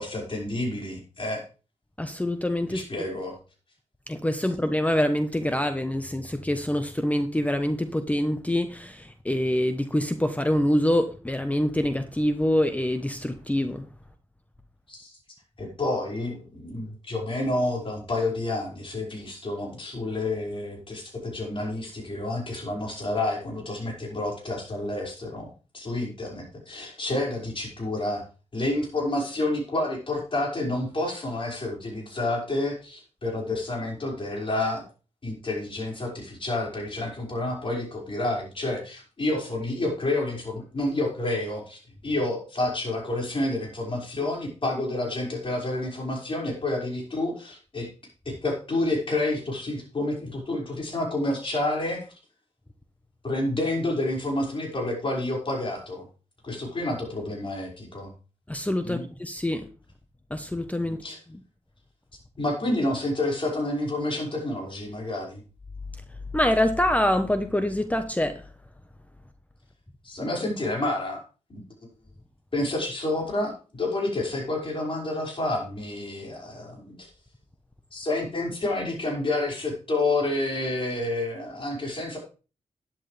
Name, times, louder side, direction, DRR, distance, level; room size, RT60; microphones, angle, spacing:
voice 1, 0.0-1.4 2.7-3.4 14.9-15.2 15.6-28.2 28.5-34.9 35.2-47.9 48.3-52.0 53.2-56.1 56.4-58.1 58.8-59.1 60.8-61.2 62.4-65.4 70.0-71.2 71.5-71.6 72.5-77.1 77.9-82.2, left 2 dB, 45° left, 5.5 m, -29 dB
voice 2, 2.0-3.0 4.1-13.9 58.5-59.6 60.3-61.0 66.3-68.4, left 1 dB, 10° left, 1.0 m, -25 dB
12.0 x 10.0 x 3.4 m
cardioid pair, 70°, 12 cm